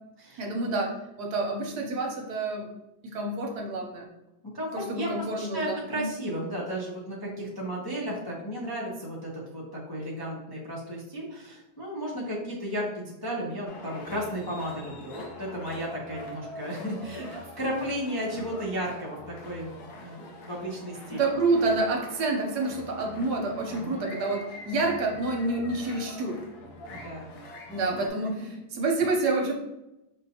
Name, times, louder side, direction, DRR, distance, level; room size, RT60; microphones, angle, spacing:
voice 1, 0.4-2.7 3.0-4.1 4.7-6.1 21.2-26.4 27.7-28.3 28.7-29.5, right 3 dB, 80° right, 1 dB, 1.3 m, -28 dB
voice 2, 4.4-19.7 20.0-21.2 23.7-24.2 26.9-27.3 27.8-28.0, equal, 30° left, -5 dB, 0.4 m, -34 dB
sound 1, 13.7-28.1, left 1 dB, 75° left, 1.2 m, -44 dB
5.3 x 2.7 x 2.8 m, 0.89 s
omnidirectional pair, 1.8 m